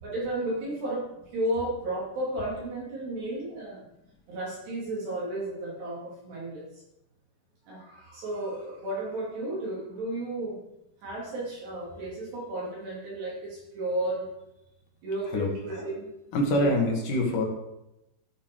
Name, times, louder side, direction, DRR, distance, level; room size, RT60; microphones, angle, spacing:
voice 1, 0.0-3.8 4.3-6.7 7.7-10.6 11.0-14.3 15.0-16.1 16.5-16.8, right 1 dB, 60° right, -6 dB, 5.4 m, -33 dB
voice 2, 16.3-17.5, left 1 dB, 55° left, 1 dB, 3.0 m, -24 dB
14.5 x 8.6 x 4.8 m, 0.89 s
omnidirectional pair, 5.5 m